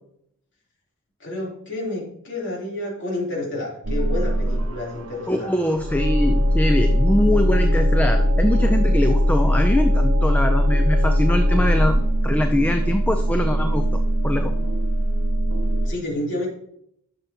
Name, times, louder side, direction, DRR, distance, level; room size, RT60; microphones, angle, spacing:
voice 1, 1.2-5.5 15.8-16.5, left 1 dB, 55° left, -3 dB, 3.4 m, -29 dB
sound 1, 3.8-15.9, equal, 65° right, 0.9 m, -20 dB
voice 2, 5.3-13.8 14.2-14.5, left 1 dB, 5° left, 6 dB, 0.4 m, -23 dB
11.5 x 6.6 x 2.9 m, 0.70 s
head